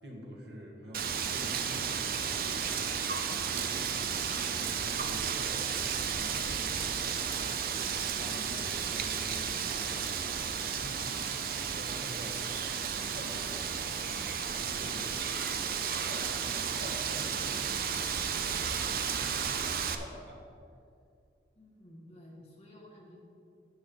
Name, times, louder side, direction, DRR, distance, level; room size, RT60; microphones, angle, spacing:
voice 1, 0.0-7.5 7.8-15.4 15.9-20.4, equal, 80° right, -1 dB, 1.6 m, -48 dB
Wind, 0.9-20.0, right 7 dB, 55° right, 0.5 m, -33 dB
voice 2, 21.6-23.2, left 1 dB, 35° left, -3 dB, 1.9 m, -53 dB
10.0 x 7.6 x 3.9 m, 2.4 s
head